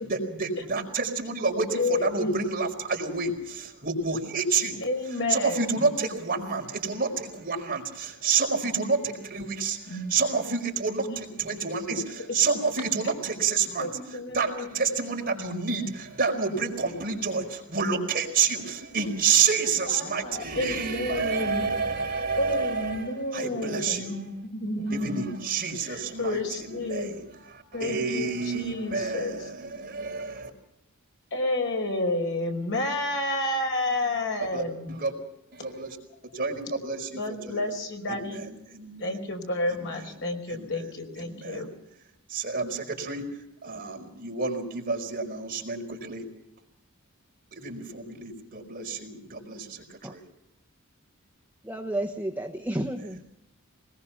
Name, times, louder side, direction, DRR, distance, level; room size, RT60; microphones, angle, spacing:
voice 1, 0.1-4.8 5.3-12.0 12.3-13.9 14.3-24.1 24.9-26.4 26.7-27.2 27.7-30.5 34.5-35.1 35.5-36.0 36.3-37.7 38.1-39.1 40.5-40.7 41.2-41.6 42.3-43.2 43.6-46.2 47.5-50.2, right 5 dB, 45° right, 1 dB, 5.1 m, -29 dB
voice 2, 1.7-2.5 4.8-5.9 9.9-10.1 11.1-11.3 11.9-12.0 13.0-13.2 13.8-14.8 19.9-21.7 22.4-25.4 25.8-27.2 27.7-29.5 31.3-35.0 37.1-38.4 39.0-41.7, left 2 dB, 60° left, 3 dB, 5.1 m, -30 dB
voice 3, 51.6-53.3, right 1 dB, 10° right, 2 dB, 1.2 m, -31 dB
22.0 x 20.5 x 5.8 m, 0.83 s
head